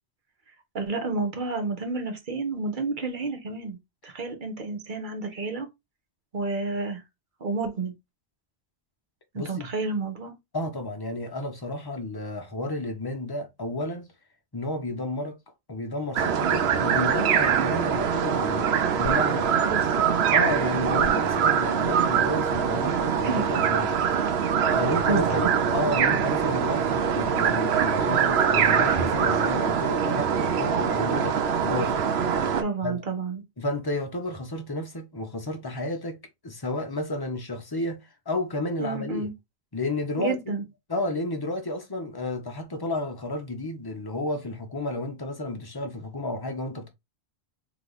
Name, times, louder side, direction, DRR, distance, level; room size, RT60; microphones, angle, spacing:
voice 1, 0.7-3.8 4.0-5.7 6.3-7.0 7.4-7.9 9.3-10.3 19.6-20.0 22.9-23.0 23.2-23.5 25.1-25.4 32.6-33.4 38.8-39.3 40.1-40.6, right 3 dB, 50° right, 1.2 m, -30 dB
voice 2, 9.3-9.7 10.5-14.1 14.5-15.4 15.7-19.5 20.3-24.0 24.7-32.0 32.8-33.0 33.6-36.2 36.4-39.3 39.7-40.4 40.9-46.9, left 2 dB, 25° left, 0.7 m, -31 dB
sound 1, 16.2-32.6, right 7 dB, 70° right, 0.9 m, -23 dB
3.4 x 3.1 x 3.9 m
omnidirectional pair, 1.1 m